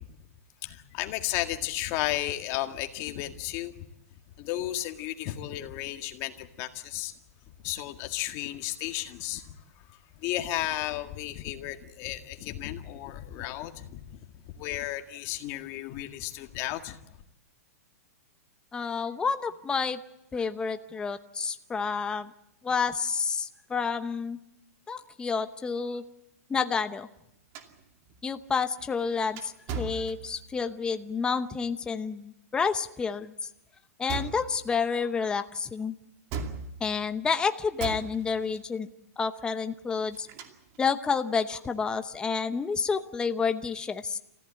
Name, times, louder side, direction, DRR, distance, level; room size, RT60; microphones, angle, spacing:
voice 1, 0.6-3.9 4.4-7.1 7.6-9.5 9.9-14.2 14.5-17.0, left 14 dB, 35° left, 1.9 m, -34 dB
voice 2, 18.7-20.0 20.3-22.3 22.6-24.4 24.9-26.0 26.5-27.1 28.2-33.3 34.0-35.9 36.8-38.9 39.2-40.3 40.8-44.2, left 5 dB, 10° left, 0.8 m, -29 dB
sound 1, 27.5-30.7 34.1-34.8 36.3-37.1 37.8-38.6 39.9-40.8, right 4 dB, 35° right, 2.4 m, -38 dB
28.5 x 15.0 x 8.8 m
hypercardioid pair, 150°, 8 cm